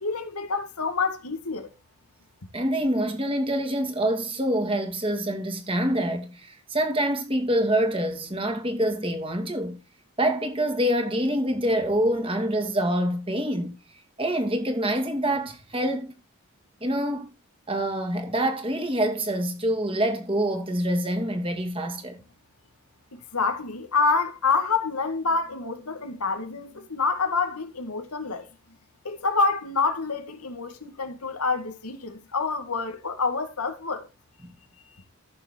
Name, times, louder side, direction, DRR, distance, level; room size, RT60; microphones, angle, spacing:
voice 1, 0.0-1.7 23.1-28.5 29.0-34.1, left 4 dB, 90° left, 2.0 m, -27 dB
voice 2, 2.5-9.8 10.2-13.8 14.2-16.2 16.8-17.3 17.7-22.2, right 1 dB, 25° right, 2.3 m, -26 dB
14.5 x 6.9 x 4.5 m
head